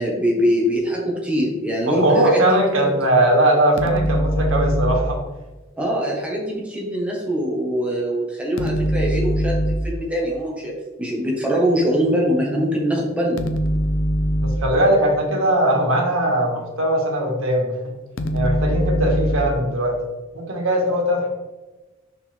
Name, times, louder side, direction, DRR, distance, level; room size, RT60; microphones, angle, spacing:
voice 1, 0.0-2.9 5.8-10.7 11.0-13.4, equal, 5° right, -3 dB, 1.5 m, -23 dB
voice 2, 1.9-5.2 14.4-17.9 18.3-20.0 20.3-21.3, right 1 dB, 85° right, 1 dB, 1.7 m, -20 dB
sound 1, 3.8-5.2 8.6-10.0 13.4-14.8 18.2-19.6, equal, 70° left, 0.6 m, -22 dB
6.2 x 6.0 x 3.6 m, 1.2 s
head